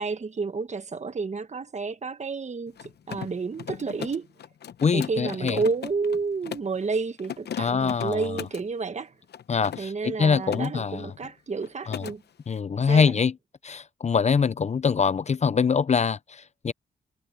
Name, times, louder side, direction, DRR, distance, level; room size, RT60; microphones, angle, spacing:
voice 1, 0.0-4.3 4.9-9.1 9.8-12.2 12.8-13.1, right 4 dB, 40° right, 1.5 m, -30 dB
Mechanisms, 2.7-6.8 7.2-8.7 9.3-10.7 11.0-11.3 11.6-12.2, left 9 dB, 70° left, 0.9 m, -38 dB
voice 2, 4.8-5.6 7.6-8.3 9.5-11.1 11.9-12.0 12.5-13.3 13.6-16.7, left 6 dB, 40° left, 0.6 m, -24 dB
cardioid pair, 75°, 18 cm